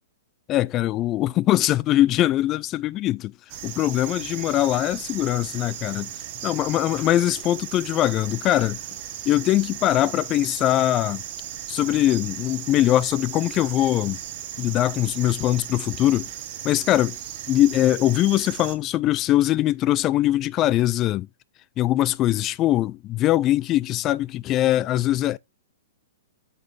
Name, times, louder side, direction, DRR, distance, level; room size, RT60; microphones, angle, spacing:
voice 1, 0.5-3.3 3.6-6.1 6.4-8.8 9.3-11.2 11.7-14.2 14.6-16.3 16.6-17.2 17.5-21.3 21.8-25.4, left 14 dB, 30° left, 0.3 m, -22 dB
sound 1, 3.5-18.7, right 11 dB, 45° right, 0.9 m, -36 dB
7.4 x 4.1 x 3.3 m
figure-of-eight pair, 115°, 0 cm